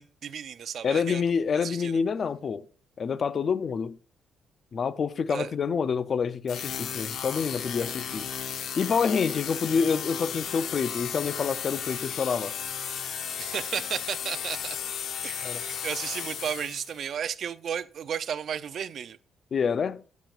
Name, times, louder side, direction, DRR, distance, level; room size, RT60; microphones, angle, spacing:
voice 1, 0.0-1.2 1.5-2.0 5.3-5.5 13.4-14.8 15.2-19.2, right 8 dB, 60° right, 0.5 m, -34 dB
voice 2, 0.8-2.7 3.0-4.0 4.7-8.3 8.8-12.6 15.4-15.6 19.5-20.0, left 6 dB, 50° left, 0.5 m, -27 dB
sound 1, 6.5-17.0, left 8 dB, 70° left, 1.0 m, -34 dB
12.0 x 7.3 x 2.5 m
cardioid pair, 90°, 0 cm